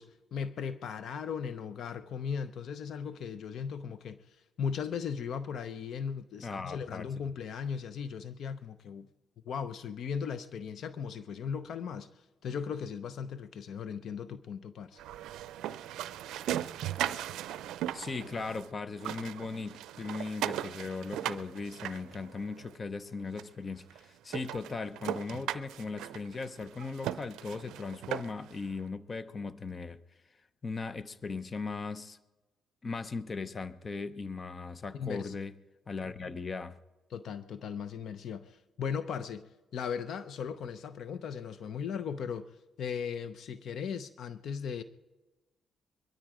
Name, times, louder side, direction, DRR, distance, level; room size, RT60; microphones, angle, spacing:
voice 1, 0.0-9.1 9.5-12.1 12.4-15.0 34.9-35.3 37.1-44.8, left 7 dB, 65° left, 0.7 m, -37 dB
voice 2, 6.4-7.0 17.9-30.0 30.6-32.2 32.8-35.5 35.9-36.8, left 4 dB, 35° left, 0.8 m, -38 dB
sound 1, 15.0-18.7 18.9-22.7 23.4-23.5 23.9-24.0 24.3-28.5, right 12 dB, 85° right, 0.4 m, -38 dB
22.5 x 13.0 x 4.9 m
cardioid pair, 90°, 0 cm